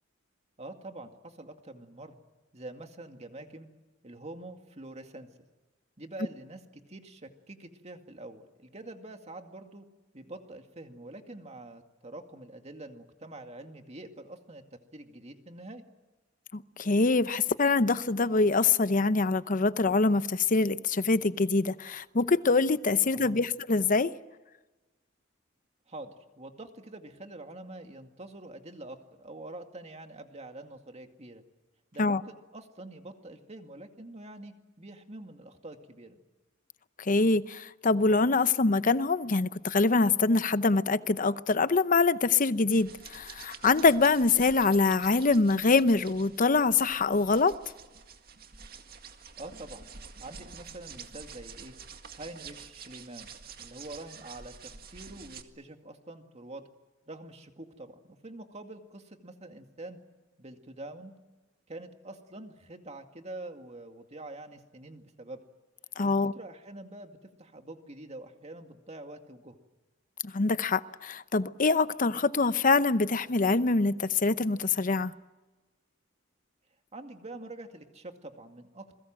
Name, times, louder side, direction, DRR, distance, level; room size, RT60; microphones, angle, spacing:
voice 1, 0.6-2.2 2.5-3.7 4.0-5.3 6.0-9.8 10.1-15.8 23.1-23.4 25.9-31.4 31.9-36.2 49.4-49.9 50.2-51.7 52.1-56.7 57.1-60.0 60.4-61.2 61.7-65.4 66.0-69.6 76.9-78.9, right 2 dB, 35° right, 2.3 m, -45 dB
voice 2, 16.5-24.1 32.0-32.2 37.0-47.6 66.0-66.3 70.2-75.1, left 3 dB, 45° left, 0.8 m, -24 dB
sound 1, 42.7-55.4, right 6 dB, 50° right, 2.0 m, -48 dB
28.5 x 21.5 x 7.7 m
head